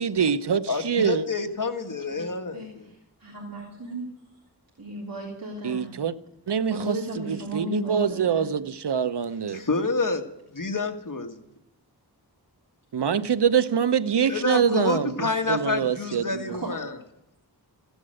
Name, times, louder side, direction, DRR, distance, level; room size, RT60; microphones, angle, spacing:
voice 1, 0.0-1.2 5.6-6.1 6.5-6.9 7.3-9.6 12.9-15.1 15.5-16.6, right 7 dB, 80° right, 0.8 m, -24 dB
voice 2, 0.7-2.9 9.5-10.3 10.5-11.4 14.3-16.9, left 3 dB, 50° left, 1.7 m, -28 dB
voice 3, 2.5-4.1 4.8-5.9 6.7-8.5 16.5-16.7, right 1 dB, 55° right, 3.4 m, -35 dB
15.5 x 11.5 x 7.7 m
wide cardioid pair, 60°, 40 cm